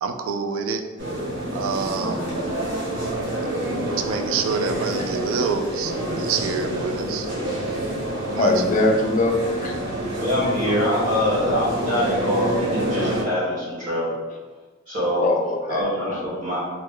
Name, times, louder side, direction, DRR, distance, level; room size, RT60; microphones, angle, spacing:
voice 1, 0.0-0.8 1.5-2.2 3.8-7.3 8.3-8.5, right 5 dB, 90° right, 8 dB, 0.3 m, -27 dB
sound 1, 1.0-13.2, right 1 dB, 60° right, 1.1 m, -28 dB
voice 2, 8.4-9.8 15.2-15.8, left 2 dB, 40° left, 2 dB, 0.4 m, -21 dB
voice 3, 10.1-14.1 14.9-15.2 15.7-16.6, equal, 40° right, -8 dB, 1.4 m, -24 dB
2.9 x 2.1 x 3.7 m, 1.3 s
head